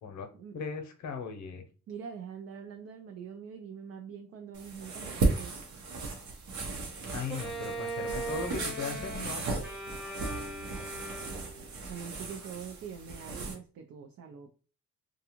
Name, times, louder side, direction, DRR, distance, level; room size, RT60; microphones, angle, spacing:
voice 1, 0.5-1.6 7.1-9.4, left 5 dB, 70° left, 6 dB, 0.7 m, -38 dB
voice 2, 1.9-5.8 11.9-14.5, right 7 dB, 55° right, 4 dB, 0.5 m, -44 dB
sound 1, 4.5-13.5, right 3 dB, 70° right, 0.8 m, -35 dB
Bowed string instrument, 7.3-11.7, right 2 dB, ahead, 0.8 m, -39 dB
2.5 x 2.3 x 2.9 m, 0.37 s
cardioid pair, 90°, 30 cm